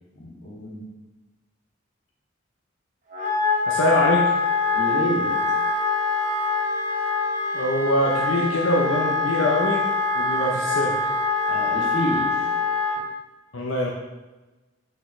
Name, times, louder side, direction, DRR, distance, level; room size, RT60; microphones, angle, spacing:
voice 1, 0.1-0.8 4.7-5.3 11.5-12.4, equal, 55° left, -5 dB, 2.3 m, -29 dB
Wind instrument woodwind instrument, 3.1-13.0, left 3 dB, 40° right, 1.2 m, -24 dB
voice 2, 3.6-4.3 7.5-9.8 10.1-11.0 13.5-13.9, left 1 dB, 85° left, -3 dB, 0.8 m, -23 dB
6.5 x 6.2 x 3.2 m, 1.1 s
head